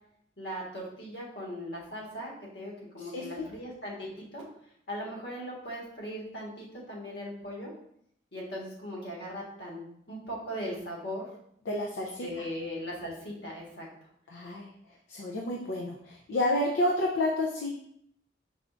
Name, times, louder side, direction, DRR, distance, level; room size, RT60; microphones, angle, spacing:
voice 1, 0.4-4.4 4.9-7.7 8.3-9.8 10.1-11.2 12.2-14.1, equal, 75° left, -4 dB, 1.5 m, -39 dB
voice 2, 3.1-3.4 11.7-12.3 14.3-14.7 15.1-17.7, left 1 dB, 90° left, -1 dB, 0.5 m, -30 dB
4.9 x 3.3 x 2.5 m, 0.69 s
head